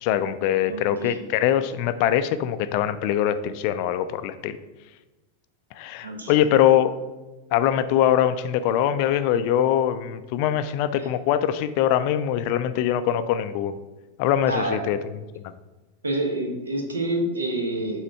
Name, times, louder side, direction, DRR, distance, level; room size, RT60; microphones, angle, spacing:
voice 1, 0.0-4.6 5.8-7.0 7.5-13.8 14.2-15.0 15.4-15.5, left 10 dB, 45° left, 12 dB, 0.4 m, -22 dB
voice 2, 0.7-1.2 6.0-6.3 11.0-11.1 14.5-14.8 16.0-18.0, right 1 dB, 75° right, 2 dB, 1.2 m, -28 dB
7.5 x 3.1 x 4.6 m, 1.2 s
figure-of-eight pair, 90°, 0 cm